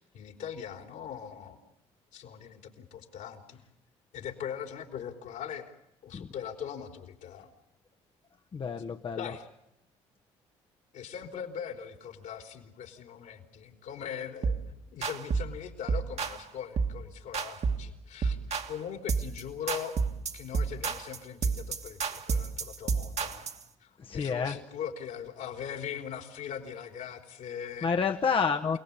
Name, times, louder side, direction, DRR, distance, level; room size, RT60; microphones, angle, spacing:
voice 1, 0.0-1.6 2.1-3.6 4.1-5.7 6.0-7.5 9.1-9.4 10.9-18.4 18.7-20.0 20.3-23.5 23.8-27.9, left 8 dB, 70° left, 4 dB, 3.7 m, -40 dB
voice 2, 8.5-9.3 24.0-24.6 27.8-28.8, left 5 dB, 40° left, 4 dB, 1.2 m, -29 dB
sound 1, 14.4-14.7 15.0-15.5 15.9-16.4 16.8-17.0 17.3-17.9 18.2-18.7 19.1-19.4 19.7-23.6, right 5 dB, 50° right, 2.0 m, -30 dB
28.5 x 18.5 x 8.6 m, 0.86 s
hypercardioid pair, 60°, 14 cm